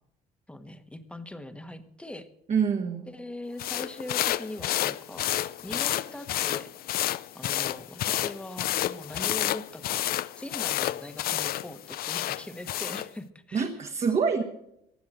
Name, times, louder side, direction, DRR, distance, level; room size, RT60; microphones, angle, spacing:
voice 1, 0.5-2.3 3.1-5.3 5.6-6.7 7.3-10.1 10.3-13.7, left 1 dB, 5° left, 10 dB, 1.3 m, -41 dB
voice 2, 2.5-3.1 13.5-14.4, right 6 dB, 40° right, 3 dB, 1.4 m, -26 dB
sound 1, 3.6-13.1, left 13 dB, 60° left, 0.6 m, -30 dB
15.5 x 9.5 x 7.6 m, 0.78 s
cardioid pair, 110°, 17 cm